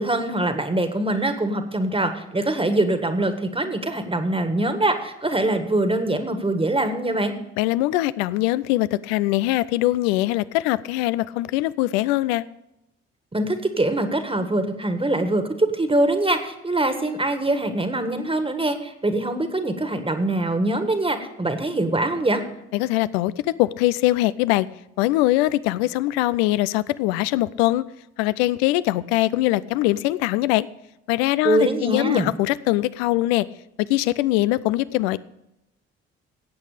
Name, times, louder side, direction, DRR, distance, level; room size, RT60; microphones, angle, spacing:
voice 1, 0.0-7.3 13.3-22.4 31.4-32.3, right 2 dB, 15° right, 8 dB, 1.7 m, -23 dB
voice 2, 7.6-12.4 22.7-24.7 25.0-27.8 28.2-30.7 31.1-33.5 33.8-35.2, left 16 dB, 75° left, 18 dB, 0.5 m, -22 dB
16.5 x 8.3 x 5.0 m, 0.87 s
hypercardioid pair, 50°, 32 cm